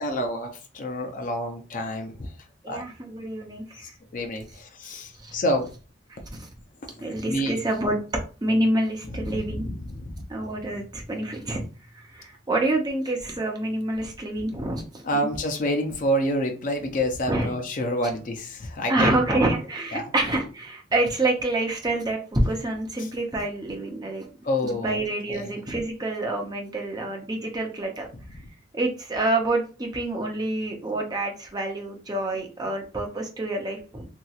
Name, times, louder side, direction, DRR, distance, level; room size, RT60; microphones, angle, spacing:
voice 1, 0.0-2.3 2.7-2.8 4.1-5.7 7.3-7.6 9.1-10.2 15.0-19.1 19.9-20.1 23.0-23.1 24.4-25.0 25.3-25.6, equal, 40° left, 3 dB, 0.5 m, -28 dB
voice 2, 2.6-3.9 5.2-5.3 6.3-6.5 7.0-8.0 8.4-9.7 10.3-11.6 11.9-15.3 17.3-17.5 18.9-24.3 24.6-28.1 28.7-34.1, right 2 dB, 20° right, 2 dB, 0.5 m, -27 dB
2.9 x 2.8 x 2.3 m, 0.36 s
head